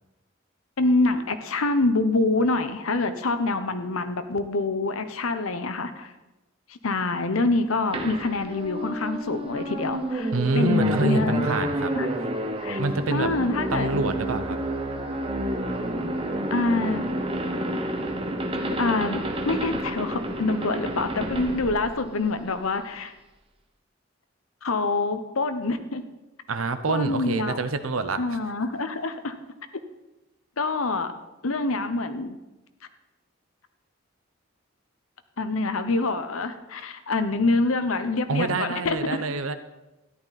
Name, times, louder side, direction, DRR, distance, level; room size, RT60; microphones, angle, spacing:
voice 1, 0.8-6.1 6.8-11.5 11.9-12.1 12.6-12.8 13.1-13.9 16.5-17.0 18.8-23.1 24.6-26.0 26.9-27.6 28.2-29.3 30.6-31.1 31.4-32.4 35.4-39.2, left 3 dB, 90° left, 9 dB, 1.0 m, -26 dB
sound 1, 7.9-22.7, right 1 dB, 25° right, 1.1 m, -30 dB
voice 2, 10.3-11.9 12.8-13.3 13.7-14.6 26.5-28.4 38.3-39.5, right 3 dB, 85° right, 10 dB, 0.9 m, -26 dB
13.5 x 11.0 x 4.2 m, 1.0 s
head